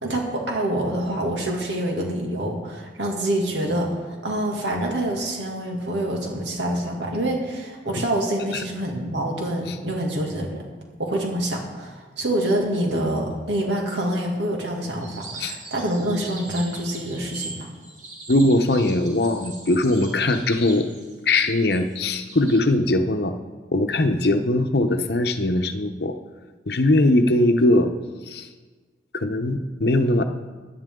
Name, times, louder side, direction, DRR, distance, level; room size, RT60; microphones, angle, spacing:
voice 1, 0.0-10.6 11.0-17.7, right 1 dB, 80° right, 0 dB, 2.4 m, -26 dB
sound 1, 15.0-22.6, right 3 dB, 40° right, 2.4 m, -40 dB
voice 2, 18.3-20.9 21.3-23.3 23.7-26.1 26.7-27.9 28.3-28.5 29.1-30.2, left 1 dB, 60° left, 7 dB, 0.8 m, -20 dB
17.0 x 10.5 x 3.8 m, 1.4 s
head